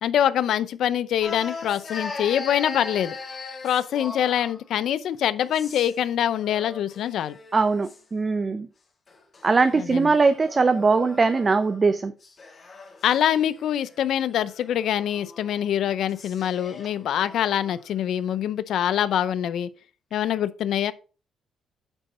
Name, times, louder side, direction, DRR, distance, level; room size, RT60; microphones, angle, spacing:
voice 1, 0.0-3.2 3.6-7.4 9.8-10.1 13.0-19.7 20.1-20.9, left 10 dB, 75° left, 0.6 m, -24 dB
sound 1, 1.2-4.6 5.4-6.0 6.4-8.0 9.1-11.8 12.2-17.8, left 4 dB, 40° left, 2.0 m, -40 dB
voice 2, 7.5-8.7 9.4-12.1, right 4 dB, 30° right, 0.6 m, -21 dB
9.0 x 4.1 x 5.6 m
cardioid pair, 90°, 0 cm